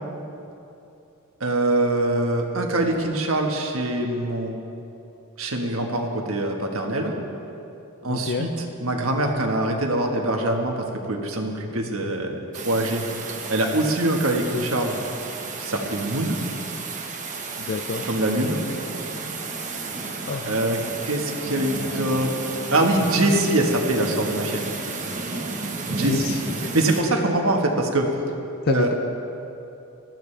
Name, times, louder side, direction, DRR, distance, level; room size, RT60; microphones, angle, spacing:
voice 1, 1.4-4.6 5.4-7.1 8.0-13.0 13.5-15.0 15.6-16.4 18.0-18.6 20.4-20.8 21.0-22.3 22.7-24.7 25.9-26.3 26.6-28.1 28.7-28.9, right 1 dB, 65° right, 2 dB, 1.5 m, -23 dB
voice 2, 8.1-8.5 17.6-18.0 20.2-20.5 26.0-26.7 28.6-28.9, left 4 dB, 45° left, 6 dB, 0.5 m, -28 dB
sound 1, 12.5-27.0, right 3 dB, 35° right, 1.3 m, -32 dB
20.0 x 13.5 x 3.4 m, 2.8 s
head